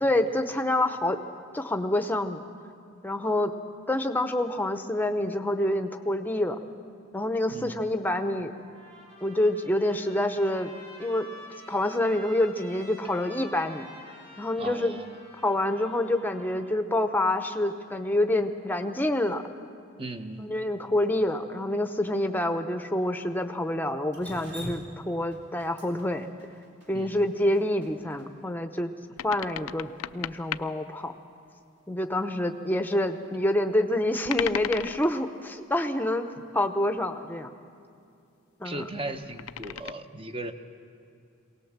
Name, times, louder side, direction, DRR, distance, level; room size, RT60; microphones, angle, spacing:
voice 1, 0.0-1.2 1.5-2.4 3.0-3.5 3.9-6.6 7.1-8.5 9.2-10.7 11.0-11.3 11.7-13.9 14.4-15.0 15.4-19.4 20.4-26.3 26.9-28.9 29.2-31.1 31.9-36.3 36.5-37.5 38.6-38.8, left 1 dB, 10° left, 7 dB, 0.8 m, -27 dB
voice 2, 7.5-7.9 14.6-15.2 20.0-20.5 26.9-27.2 38.6-40.5, right 2 dB, 25° right, 7 dB, 0.9 m, -37 dB
Trumpet, 8.6-16.7, equal, 70° right, 6.0 m, -48 dB
Drip, 24.1-28.3, equal, 50° right, 2.7 m, -43 dB
sound 1, 29.2-30.7 34.2-35.2 38.8-39.9, left 10 dB, 90° left, 0.4 m, -35 dB
23.0 x 18.0 x 7.4 m, 2.5 s
head